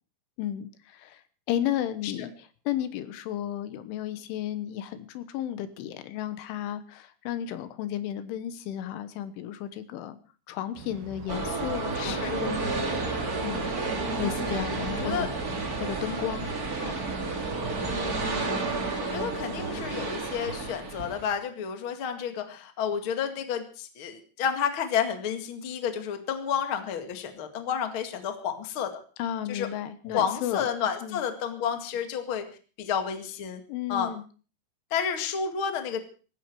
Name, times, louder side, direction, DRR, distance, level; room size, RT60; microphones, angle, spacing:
voice 1, 0.4-1.2 1.5-10.2 10.5-12.6 13.4-13.7 14.2-15.3 15.7-16.5 29.2-30.7 31.0-31.2 33.7-34.2, left 11 dB, 80° left, 12 dB, 3.5 m, -33 dB
sound 1, 10.7-18.2, right 6 dB, 70° right, 4.0 m, -44 dB
sound 2, 11.3-21.3, right 3 dB, 30° right, 1.7 m, -31 dB
voice 2, 11.9-12.3 14.9-15.3 16.8-17.0 19.0-28.9 29.5-29.7 30.0-32.4 32.8-33.6 33.9-34.1 34.9-36.0, left 7 dB, 50° left, 7 dB, 1.5 m, -30 dB
19.0 x 15.5 x 4.7 m, 0.39 s
omnidirectional pair, 5.7 m